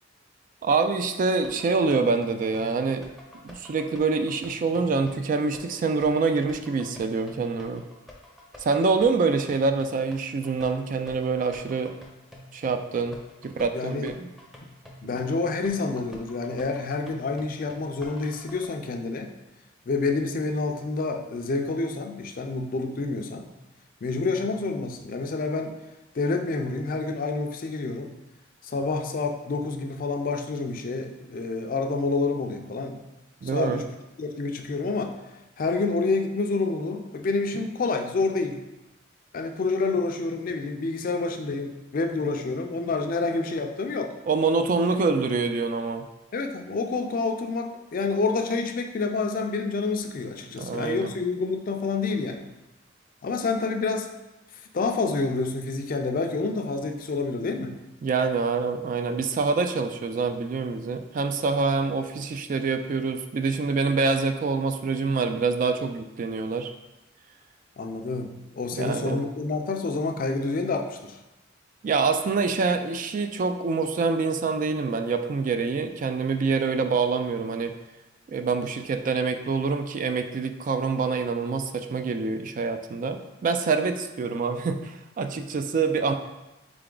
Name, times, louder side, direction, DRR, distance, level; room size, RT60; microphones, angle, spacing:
voice 1, 0.6-3.1 3.4-7.8 8.6-11.9 12.5-13.2 13.4-14.3 15.1-15.2 33.4-33.8 44.3-46.0 50.6-51.1 58.0-66.7 68.8-69.2 71.8-77.7 78.3-86.1, right 4 dB, 45° right, 8 dB, 0.3 m, -26 dB
sound 1, 1.1-18.7, left 1 dB, ahead, 0.6 m, -49 dB
voice 2, 13.7-14.1 15.0-19.3 19.9-23.5 24.0-25.7 26.1-28.1 28.6-33.0 33.4-33.8 34.2-35.1 35.6-38.6 39.3-44.1 46.3-52.5 53.2-54.1 54.7-57.8 67.8-71.2, left 3 dB, 50° left, 4 dB, 0.4 m, -28 dB
3.8 x 3.4 x 3.7 m, 1.0 s
head